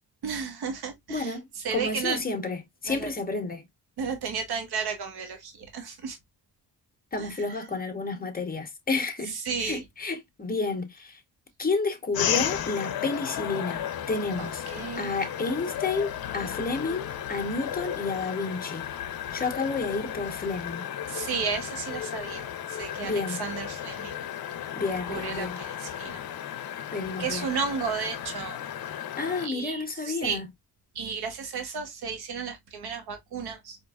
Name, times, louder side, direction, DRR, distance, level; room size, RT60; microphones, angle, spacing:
voice 1, 0.2-1.3 1.6-2.2 2.9-3.1 4.0-6.2 7.2-7.3 9.5-9.8 14.4-15.1 21.1-24.1 25.1-26.2 27.2-28.6 29.4-30.4 30.9-33.8, right 6 dB, 90° right, 1.0 m, -33 dB
voice 2, 1.1-1.4 1.7-3.7 7.1-11.2 11.6-14.6 15.0-18.9 19.3-20.9 23.0-23.4 24.7-25.6 26.9-27.5 29.2-30.4, left 3 dB, 25° left, 1.0 m, -31 dB
sound 1, 12.1-29.5, left 10 dB, 70° left, 0.6 m, -34 dB
4.5 x 2.5 x 2.3 m
cardioid pair, 95°, 37 cm